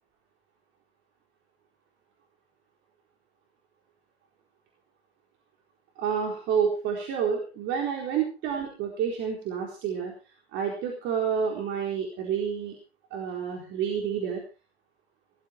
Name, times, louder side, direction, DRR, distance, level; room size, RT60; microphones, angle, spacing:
voice 1, 6.0-10.1 10.5-12.8 13.1-14.4, right 7 dB, 35° right, 1 dB, 4.2 m, -29 dB
18.5 x 13.0 x 4.5 m, 0.35 s
hypercardioid pair, 110°, 32 cm